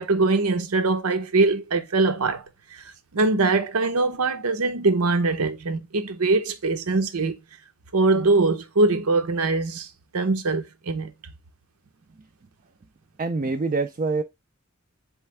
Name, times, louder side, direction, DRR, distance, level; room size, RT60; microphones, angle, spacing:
voice 1, 0.0-2.4 3.1-7.3 7.9-9.9 10.1-11.1, right 3 dB, 85° right, 0.8 m, -22 dB
voice 2, 13.2-14.2, right 3 dB, 35° right, 0.3 m, -25 dB
4.4 x 3.2 x 3.2 m
head